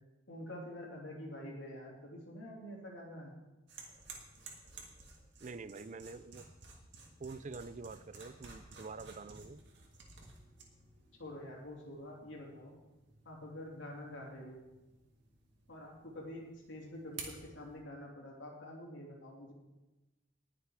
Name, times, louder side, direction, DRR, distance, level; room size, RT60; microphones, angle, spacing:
voice 1, 0.3-3.3 11.2-12.7 13.2-14.6 15.7-19.5, left 1 dB, 65° left, -1 dB, 3.1 m, -47 dB
sound 1, 3.7-17.8, right 4 dB, 60° right, 2.3 m, -54 dB
voice 2, 5.4-6.5 7.2-9.6, right 4 dB, 35° right, 14 dB, 0.4 m, -46 dB
19.5 x 6.8 x 4.8 m, 1.1 s
head